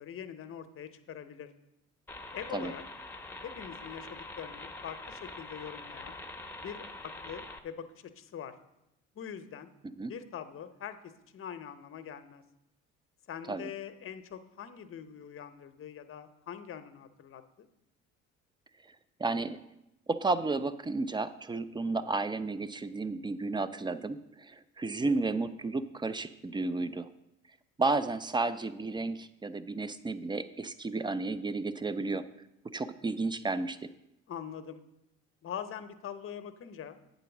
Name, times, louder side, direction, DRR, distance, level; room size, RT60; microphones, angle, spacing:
voice 1, 0.0-1.5 2.3-2.8 3.4-6.2 6.6-8.5 9.1-9.7 10.1-12.4 13.3-17.7 34.3-34.8 35.4-37.0, left 8 dB, 40° left, 10 dB, 0.8 m, -43 dB
sound 1, 2.1-7.6, left 2 dB, 5° left, 0.8 m, -44 dB
voice 2, 19.2-19.6 20.1-27.1 27.8-32.2 32.7-33.9, right 3 dB, 15° right, 13 dB, 0.4 m, -32 dB
8.3 x 4.0 x 7.0 m, 0.87 s
hypercardioid pair, 70°, 34 cm